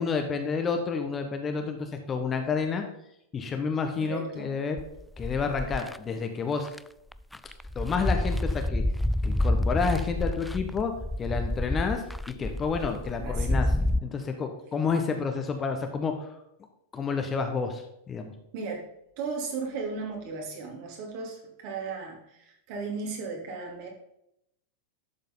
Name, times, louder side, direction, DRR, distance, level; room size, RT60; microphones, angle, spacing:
voice 1, 0.0-2.8 3.3-4.8 5.2-6.7 7.7-8.8 9.2-10.9 11.2-13.7 14.0-16.3 16.9-18.3, left 5 dB, 20° left, 5 dB, 1.3 m, -30 dB
voice 2, 4.0-4.5 13.2-13.7 18.5-18.9 19.2-23.9, right 4 dB, 45° right, 0 dB, 3.1 m, -36 dB
sound 1, 4.8-6.0 6.7-6.8 7.1-14.0, left 1 dB, 5° left, 0.3 m, -28 dB
12.0 x 7.3 x 4.0 m, 0.78 s
figure-of-eight pair, 90°, 0 cm